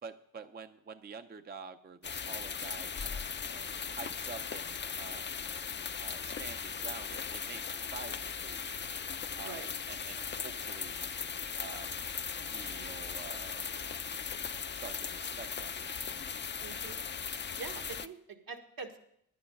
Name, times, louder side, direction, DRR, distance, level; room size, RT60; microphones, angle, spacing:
voice 1, 0.0-5.3 6.0-8.7 9.3-9.6 9.9-10.9 11.5-11.9 12.5-13.6 14.7-16.1, right 5 dB, 25° right, 9 dB, 0.6 m, -48 dB
sound 1, 2.0-18.1, left 6 dB, 30° left, 0.5 m, -38 dB
voice 2, 9.4-9.7 16.6-17.0 17.5-19.0, right 4 dB, 70° right, 3 dB, 1.7 m, -44 dB
10.5 x 9.5 x 5.3 m, 0.71 s
cardioid pair, 100°, 36 cm